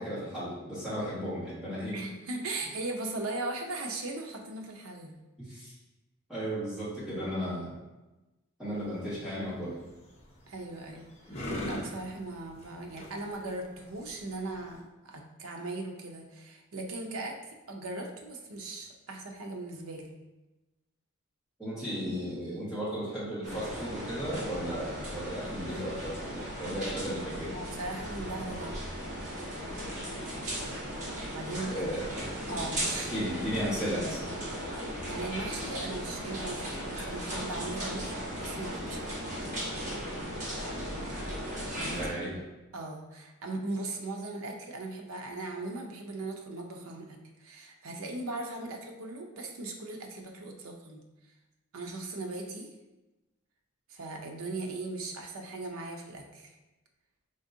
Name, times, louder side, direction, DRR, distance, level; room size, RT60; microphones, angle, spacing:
voice 1, 0.0-1.9 5.4-5.7 6.3-7.7 8.6-9.7 21.6-26.1 26.6-27.6 31.7-32.1 32.9-34.2 42.0-42.3, equal, 5° right, -12 dB, 1.3 m, -35 dB
voice 2, 1.9-5.2 10.5-20.1 27.5-28.8 31.3-32.0 32.5-33.1 35.1-39.2 41.8-42.1 42.7-51.0 51.7-52.7 53.9-56.5, right 2 dB, 70° right, 2 dB, 0.6 m, -38 dB
sound 1, 8.7-14.8, left 1 dB, 30° left, 0.7 m, -42 dB
sound 2, 23.4-42.1, equal, 35° right, 1.2 m, -37 dB
3.8 x 3.5 x 2.6 m, 1.0 s
head